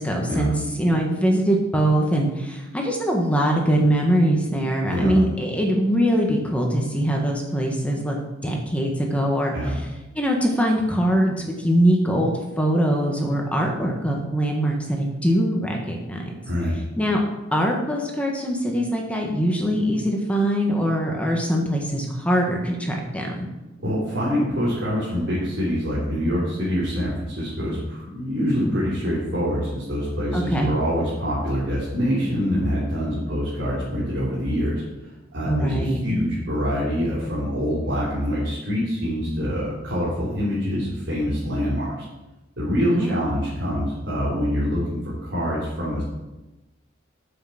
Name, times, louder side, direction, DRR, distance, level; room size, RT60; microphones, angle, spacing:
voice 1, 0.0-8.2 8.4-9.9 10.1-16.4 17.0-17.2 17.5-23.5 30.3-30.7 35.5-36.0 42.9-43.2, equal, 5° left, 0 dB, 1.4 m, -22 dB
voice 2, 23.8-34.8 35.3-42.0 42.6-46.0, equal, 65° right, -8 dB, 3.7 m, -25 dB
9.2 x 7.7 x 5.9 m, 1.0 s
head